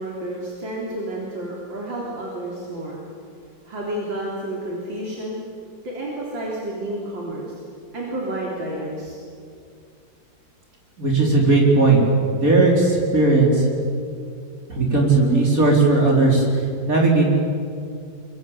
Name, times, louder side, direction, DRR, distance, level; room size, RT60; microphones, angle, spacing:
voice 1, 0.0-3.0 3.7-5.4 5.8-7.6 7.9-9.2, right 1 dB, 90° right, -3 dB, 4.3 m, -30 dB
voice 2, 11.0-12.0 12.3-13.6 14.7-16.5 16.9-17.2, right 3 dB, 45° right, -1 dB, 4.7 m, -17 dB
23.5 x 23.5 x 9.0 m, 2.3 s
omnidirectional pair, 2.0 m